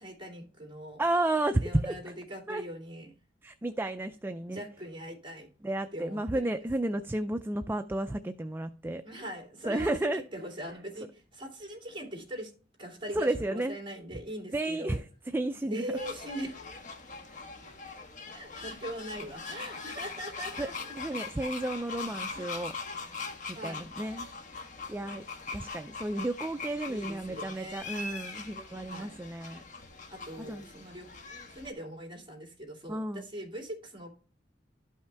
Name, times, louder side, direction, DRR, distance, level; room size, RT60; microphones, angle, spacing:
voice 1, 0.0-1.0 1.6-3.2 4.5-5.5 5.9-6.5 9.0-12.5 12.8-15.0 15.7-16.6 18.3-20.9 22.3-22.6 23.5-23.8 26.9-28.0 28.8-29.2 30.1-31.1 31.5-34.1, equal, 30° right, 2.9 m, -41 dB
voice 2, 1.0-2.0 2.5-2.6 3.4-4.6 5.6-9.0 9.7-10.2 13.1-13.8 14.5-15.0 15.3-15.9 20.6-20.7 21.0-22.7 23.6-24.3 24.9-25.2 25.5-29.6 30.5-30.7 32.9-33.3, right 1 dB, 10° right, 0.3 m, -32 dB
sound 1, 15.9-31.7, left 4 dB, 45° left, 1.3 m, -42 dB
12.5 x 5.6 x 3.4 m
head